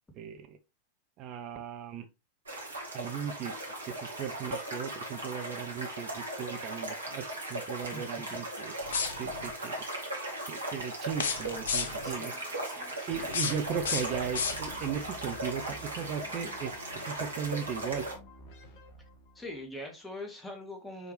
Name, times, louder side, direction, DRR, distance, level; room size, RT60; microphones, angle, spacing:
voice 1, 0.1-0.6 1.2-2.1 2.9-3.5 3.9-8.7 9.2-9.8 10.5-12.3 13.1-16.8 17.1-18.1, right 8 dB, 35° right, 0.9 m, -37 dB
sound 1, 2.5-18.1, right 1 dB, 70° right, 2.2 m, -38 dB
sound 2, 8.8-9.5 11.1-12.2 13.1-15.0, left 6 dB, 65° left, 0.9 m, -34 dB
voice 2, 12.0-13.3 19.3-21.1, left 1 dB, 10° left, 2.0 m, -43 dB
Minimoog bass, 13.7-19.8, equal, 40° left, 1.7 m, -51 dB
6.5 x 5.0 x 3.0 m
figure-of-eight pair, 90°, 0 cm